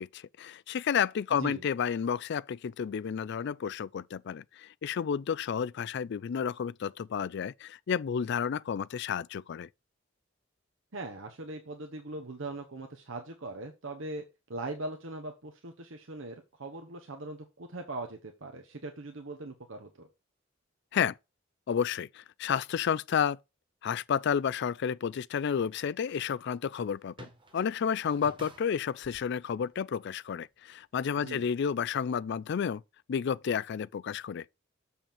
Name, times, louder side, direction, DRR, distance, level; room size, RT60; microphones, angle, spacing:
voice 1, 0.0-9.7 20.9-21.2 21.7-23.4 23.8-32.8 33.1-34.4, left 7 dB, 60° left, 0.4 m, -31 dB
voice 2, 10.9-14.2 14.5-20.1 31.2-31.5, right 2 dB, 75° right, 1.1 m, -40 dB
sound 1, 25.9-30.4 30.7-30.9 31.2-31.3, right 2 dB, 25° right, 1.4 m, -53 dB
7.2 x 5.6 x 4.3 m
head